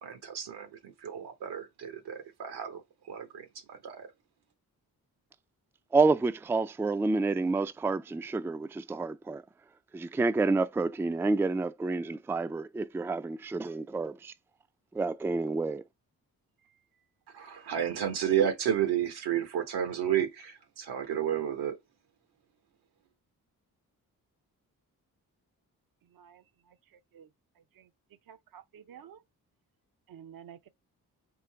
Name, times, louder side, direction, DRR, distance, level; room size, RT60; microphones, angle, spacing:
voice 1, 0.0-2.8 3.1-4.1 17.3-21.8, right 9 dB, 85° right, 1.1 m, -31 dB
voice 2, 5.9-9.4 9.9-14.3 14.9-15.8, right 3 dB, 5° right, 0.3 m, -29 dB
voice 3, 26.1-26.8 27.1-27.3 27.8-27.9 28.3-29.2 30.1-30.7, right 9 dB, 60° right, 0.6 m, -51 dB
3.9 x 2.7 x 4.4 m
supercardioid pair, 50°, 38 cm